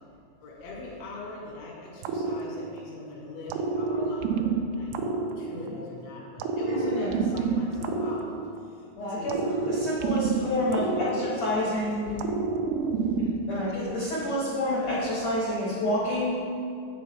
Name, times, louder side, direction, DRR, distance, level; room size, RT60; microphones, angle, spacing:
voice 1, 0.4-4.5 4.7-8.2 8.6-9.8 10.2-11.4 11.6-11.9, left 2 dB, 40° left, -5 dB, 1.7 m, -40 dB
sound 1, 2.0-3.0 3.5-5.9 6.4-8.8 9.3-11.7 12.2-13.7, right 4 dB, 85° right, 2.4 m, -29 dB
voice 2, 6.7-7.2 9.0-9.3 9.7-12.2 13.2-16.3, left 1 dB, 55° left, -8 dB, 1.9 m, -29 dB
8.3 x 7.0 x 4.5 m, 2.4 s
omnidirectional pair, 5.1 m